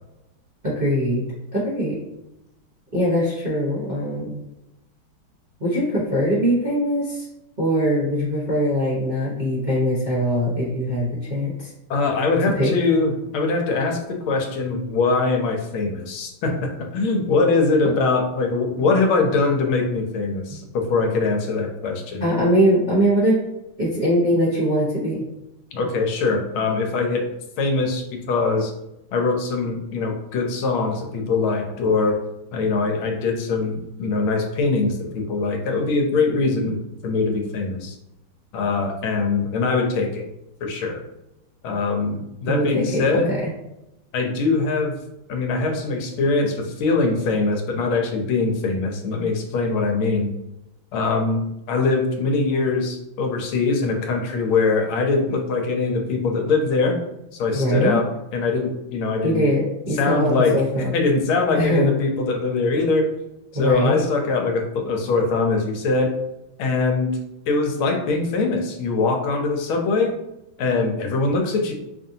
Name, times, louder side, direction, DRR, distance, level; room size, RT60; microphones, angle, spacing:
voice 1, 0.6-1.2 1.5-2.0 2.9-4.4 5.6-7.3 7.6-11.7 12.5-12.7 20.5-20.6 22.2-23.4 23.8-25.2 42.4-43.5 57.5-58.0 59.2-60.9 61.6-61.9 63.5-64.0, equal, 35° right, -9 dB, 0.8 m, -22 dB
voice 2, 11.9-22.2 25.7-27.3 27.6-28.7 29.1-32.2 32.5-36.8 37.0-38.0 38.5-40.2 40.6-41.0 41.6-43.3 44.1-44.9 45.3-50.3 50.9-57.0 57.3-58.0 58.3-59.5 59.9-60.6 60.9-63.1 63.5-66.1 66.6-67.2 67.5-70.2 70.6-71.7, left 3 dB, 80° left, 2 dB, 1.5 m, -22 dB
5.3 x 2.6 x 2.7 m, 0.89 s
omnidirectional pair, 2.3 m